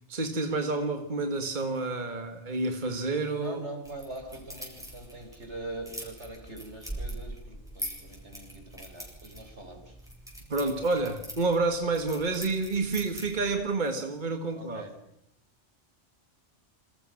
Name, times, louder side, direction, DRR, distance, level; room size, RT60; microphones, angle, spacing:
voice 1, 0.1-3.6 10.5-14.9, right 3 dB, 40° right, 1.9 m, -29 dB
voice 2, 3.3-10.0 14.5-15.0, right 2 dB, 70° right, 4.8 m, -42 dB
sound 1, 3.8-13.6, right 1 dB, 5° right, 7.9 m, -43 dB
28.0 x 26.0 x 6.5 m
omnidirectional pair, 1.2 m